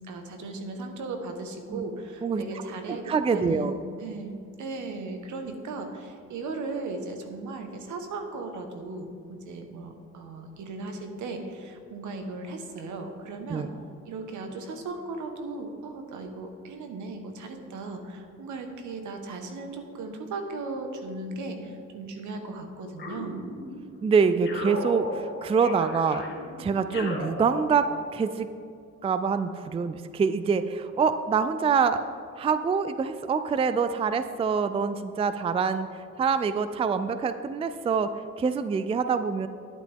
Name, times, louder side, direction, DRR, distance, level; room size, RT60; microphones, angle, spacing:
voice 1, 0.1-3.7 4.0-13.7 14.1-23.5, right 3 dB, 75° right, 5 dB, 1.3 m, -37 dB
voice 2, 3.1-3.8 13.5-13.7 24.0-26.3 26.6-28.5 29.0-32.0 32.4-35.9 36.2-38.1 38.4-39.5, right 5 dB, 20° right, 11 dB, 0.3 m, -25 dB
sound 1, 23.0-24.0 24.4-28.1, left 2 dB, 35° left, 2.1 m, -36 dB
11.0 x 9.1 x 3.6 m, 2.4 s
cardioid pair, 90°, 30 cm